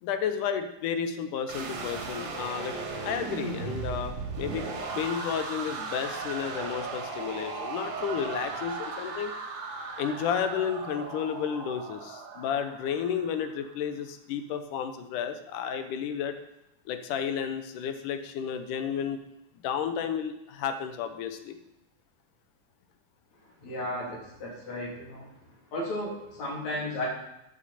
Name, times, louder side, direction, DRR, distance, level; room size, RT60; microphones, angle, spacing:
voice 1, 0.0-2.8 3.0-9.3 10.0-16.4 16.9-19.2 19.6-21.6, left 8 dB, 85° left, 8 dB, 2.4 m, -32 dB
sound 1, 1.5-13.5, right 4 dB, 70° right, 3.0 m, -37 dB
voice 2, 23.6-25.3 25.7-27.1, left 1 dB, 60° left, -3 dB, 4.2 m, -34 dB
14.0 x 8.2 x 4.2 m, 0.87 s
omnidirectional pair, 3.6 m